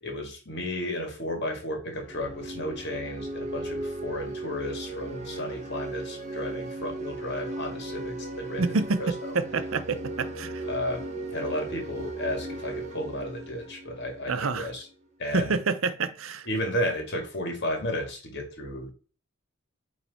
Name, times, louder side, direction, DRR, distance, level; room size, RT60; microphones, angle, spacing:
voice 1, 0.0-8.6 9.0-9.3 10.7-14.8 15.2-15.5 16.5-18.9, left 1 dB, 55° left, 2.0 m, -33 dB
sound 1, 1.9-14.6, right 2 dB, 35° right, 1.0 m, -37 dB
voice 2, 8.6-10.7 14.3-14.7 15.3-16.5, right 4 dB, 75° right, 0.7 m, -28 dB
8.8 x 3.3 x 4.1 m
head